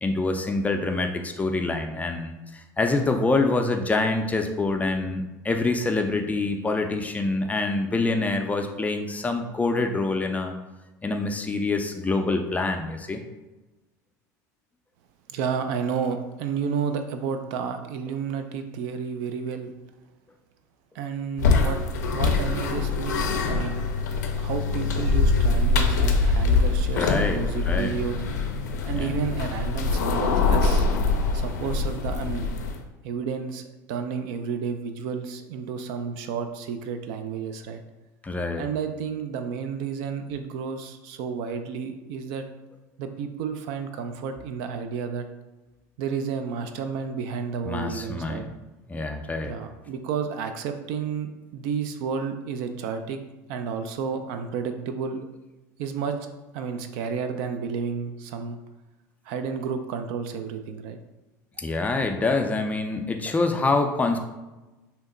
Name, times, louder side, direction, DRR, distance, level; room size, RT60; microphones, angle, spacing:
voice 1, 0.0-10.5 11.0-13.2 27.0-27.4 27.7-28.0 29.0-29.1 38.2-38.7 47.7-48.5 48.9-49.6 61.6-64.2, left 3 dB, 15° left, 5 dB, 0.4 m, -26 dB
voice 2, 15.3-19.7 20.9-21.8 22.1-23.8 24.4-28.2 28.8-30.9 31.3-32.5 33.0-33.6 33.9-37.8 38.6-42.5 43.0-45.3 46.0-48.4 49.4-53.2 53.5-55.2 55.8-56.3 56.5-58.6 59.3-61.0, right 6 dB, 65° right, 7 dB, 0.4 m, -31 dB
sound 1, 21.4-32.8, left 3 dB, 85° left, 0.4 m, -24 dB
2.8 x 2.1 x 3.7 m, 1.1 s
hypercardioid pair, 85°, 9 cm